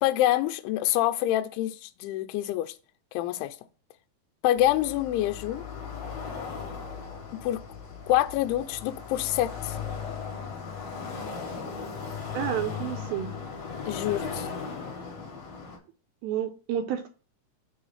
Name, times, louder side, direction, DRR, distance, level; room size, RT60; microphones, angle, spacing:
voice 1, 0.0-2.7 3.1-3.6 4.4-5.6 7.4-7.6 8.1-9.8 13.9-14.5, left 14 dB, 85° left, 2.6 m, -26 dB
sound 1, 4.6-15.8, left 6 dB, 50° left, 2.2 m, -37 dB
voice 2, 12.3-13.3 16.2-17.1, right 10 dB, 80° right, 2.3 m, -30 dB
6.6 x 3.1 x 5.5 m
omnidirectional pair, 4.6 m